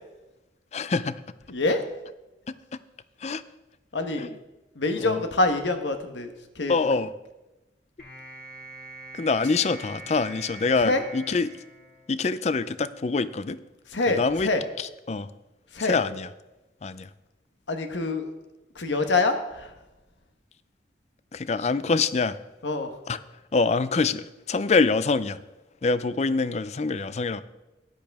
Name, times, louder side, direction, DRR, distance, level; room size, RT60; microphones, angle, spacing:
voice 1, 0.7-1.2 2.5-2.6 3.2-3.4 4.2-4.3 5.0-5.2 6.7-7.1 9.1-11.6 12.1-13.6 14.1-14.5 14.8-15.3 15.8-16.3 16.8-17.1 21.3-22.4 23.1-23.2 23.5-25.4 25.8-27.4, left 4 dB, 40° left, 15 dB, 0.4 m, -25 dB
voice 2, 1.5-1.8 3.9-4.3 4.7-6.8 10.8-11.0 13.9-14.6 15.7-16.0 17.7-18.3 18.7-19.8 22.6-23.0, left 2 dB, 90° left, 7 dB, 1.2 m, -26 dB
sound 1, 8.0-12.5, right 2 dB, 55° left, 3.6 m, -44 dB
13.5 x 10.5 x 3.5 m, 1.0 s
head